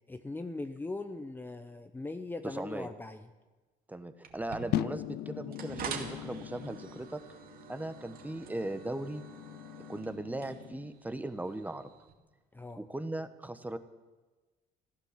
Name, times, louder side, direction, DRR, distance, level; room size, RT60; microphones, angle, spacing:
voice 1, 0.1-3.3 12.5-12.8, left 2 dB, 10° left, 8 dB, 0.7 m, -40 dB
voice 2, 2.4-2.9 3.9-7.2 7.7-9.2 9.9-11.9 12.8-13.8, right 1 dB, 10° right, 10 dB, 1.1 m, -38 dB
sound 1, 4.2-12.1, right 6 dB, 60° right, 2.3 m, -46 dB
sound 2, 4.7-10.9, left 15 dB, 70° left, 0.5 m, -40 dB
15.0 x 12.5 x 7.4 m, 1.2 s
cardioid pair, 110°, 17 cm